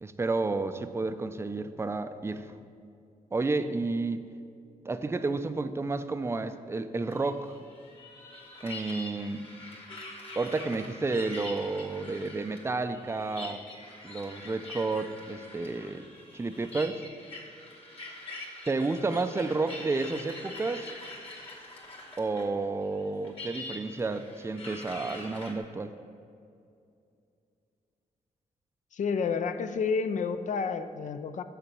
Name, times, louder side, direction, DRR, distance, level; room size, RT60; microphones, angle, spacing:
voice 1, 0.0-2.6 3.3-4.2 4.9-7.5 8.6-9.5 10.4-13.6 14.0-16.0 16.3-17.0 18.7-21.0 22.2-25.9, right 3 dB, 20° right, 10 dB, 0.4 m, -31 dB
sound 1, 7.1-22.6 22.8-25.5, left 2 dB, 40° left, 1.9 m, -44 dB
voice 2, 28.9-31.4, left 5 dB, 60° left, 10 dB, 0.5 m, -30 dB
6.9 x 6.5 x 6.0 m, 2.5 s
cardioid pair, 80°, 14 cm